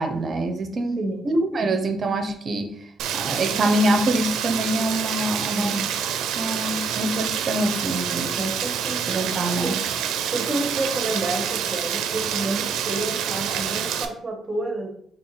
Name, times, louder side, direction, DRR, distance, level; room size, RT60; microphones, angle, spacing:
voice 1, 0.0-1.0 1.2-2.7 3.1-5.8 6.4-8.4 9.1-9.8, right 1 dB, 40° right, 6 dB, 0.7 m, -25 dB
Rain, 3.0-14.1, right 9 dB, 90° right, 0.4 m, -27 dB
voice 2, 5.4-5.9 8.3-9.1 9.6-9.8 10.3-14.9, right 2 dB, 20° right, 4 dB, 1.1 m, -29 dB
5.3 x 3.0 x 3.1 m, 0.64 s
cardioid pair, 115°, 0 cm